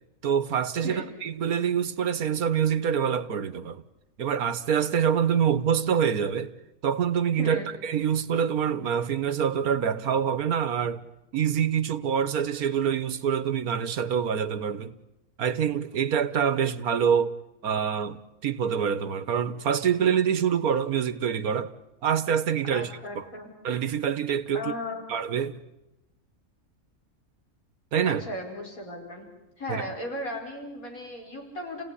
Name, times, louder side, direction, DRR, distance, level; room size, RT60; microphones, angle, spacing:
voice 1, 0.2-3.8 4.2-6.5 6.8-11.0 11.3-15.0 15.4-17.3 17.6-21.7 22.0-23.2 23.6-24.7 25.1-25.6 27.9-28.2 29.7-29.9, right 8 dB, 90° right, 1.6 m, -26 dB
voice 2, 7.4-7.7 22.7-23.5 24.5-25.0 28.0-29.3 29.6-31.8, left 1 dB, 75° left, 5.5 m, -36 dB
29.5 x 17.0 x 10.0 m
omnidirectional pair, 1.5 m